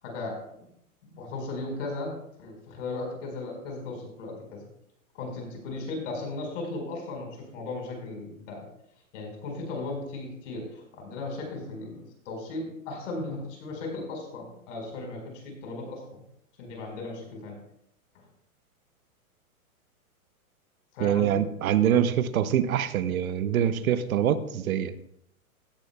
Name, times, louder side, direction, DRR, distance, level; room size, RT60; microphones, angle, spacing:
voice 1, 0.0-0.7 1.1-4.7 5.1-8.7 9.1-16.2 16.6-17.6 18.1-18.2 20.9-21.4, left 2 dB, 60° left, 2 dB, 4.7 m, -36 dB
voice 2, 21.0-24.9, right 9 dB, 70° right, 13 dB, 0.9 m, -24 dB
16.0 x 10.0 x 2.2 m, 0.73 s
hypercardioid pair, 135°, 43 cm